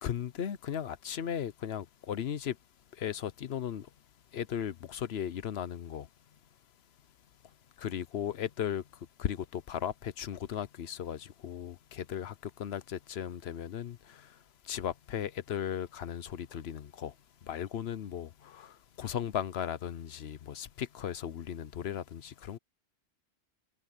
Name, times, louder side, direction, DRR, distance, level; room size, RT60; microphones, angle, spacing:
voice 1, 0.0-2.6 2.9-3.9 4.3-6.1 7.8-14.4 14.6-17.1 17.4-22.6, left 9 dB, 80° left, 1.0 m, -36 dB
omnidirectional pair, 1.1 m